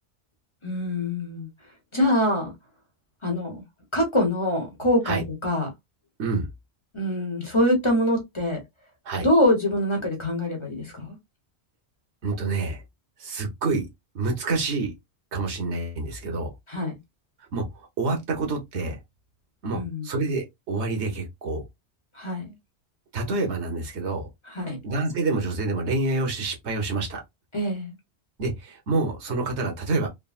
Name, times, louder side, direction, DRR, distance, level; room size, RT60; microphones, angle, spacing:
voice 1, 0.6-1.5 1.9-2.5 3.2-3.6 3.9-5.7 6.9-8.6 9.2-11.2 16.7-17.0 19.7-20.1 22.2-22.5 24.5-24.8 27.5-27.9, left 1 dB, 30° left, 0.9 m, -24 dB
voice 2, 12.2-12.8 13.2-13.9 14.1-14.9 15.3-16.5 17.5-17.6 18.0-19.0 19.6-21.6 23.1-24.3 24.8-27.2 28.4-30.1, right 3 dB, 80° right, 1.2 m, -27 dB
3.6 x 2.0 x 2.3 m
omnidirectional pair, 1.1 m